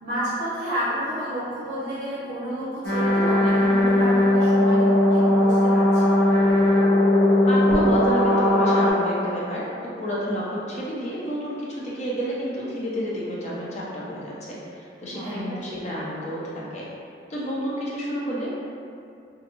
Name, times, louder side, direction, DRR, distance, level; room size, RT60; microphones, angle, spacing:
voice 1, 0.0-6.3 15.1-15.8, equal, 60° right, -11 dB, 0.6 m, -30 dB
sound 1, 2.8-8.9, left 1 dB, 90° left, 0.7 m, -18 dB
voice 2, 7.5-9.6 10.0-16.9 17.3-18.5, equal, 35° left, -6 dB, 0.4 m, -30 dB
2.5 x 2.2 x 2.9 m, 2.5 s
head